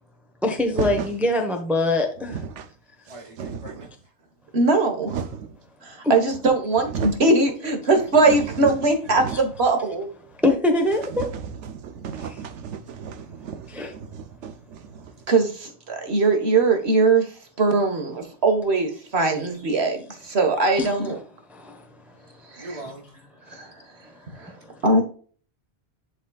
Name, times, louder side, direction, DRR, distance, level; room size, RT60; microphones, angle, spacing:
voice 1, 0.4-2.3 6.0-6.2 10.4-11.2 13.7-13.9 20.8-20.9 21.6-21.7, left 2 dB, ahead, 1.0 m, -22 dB
sound 1, 0.7-1.2 1.9-2.7 3.1-3.9 4.6-5.6 6.3-6.4 6.7-7.3 7.7-9.7 9.9-10.0 10.3-10.4 10.8-15.3, right 7 dB, 85° right, 1.0 m, -34 dB
voice 2, 3.1-3.9 22.6-23.1, right 2 dB, 30° right, 1.5 m, -39 dB
voice 3, 4.5-5.2 5.8-10.1 15.3-21.2 22.5-22.8 23.5-23.7 24.4-24.5 24.8-25.0, right 3 dB, 65° right, 1.8 m, -21 dB
11.5 x 4.2 x 2.4 m
omnidirectional pair, 1.2 m